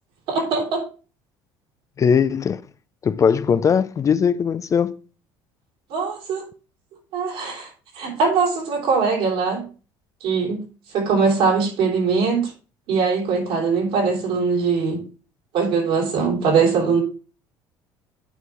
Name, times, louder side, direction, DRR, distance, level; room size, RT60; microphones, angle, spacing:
voice 1, 0.3-0.8 5.9-6.4 7.1-9.7 10.2-10.6 10.9-12.5 12.9-15.0 15.5-17.0, right 5 dB, 75° right, 3.4 m, -21 dB
voice 2, 2.0-2.6 3.0-5.0, left 7 dB, 35° left, 0.4 m, -19 dB
9.1 x 4.6 x 3.4 m
supercardioid pair, 100°, 10 cm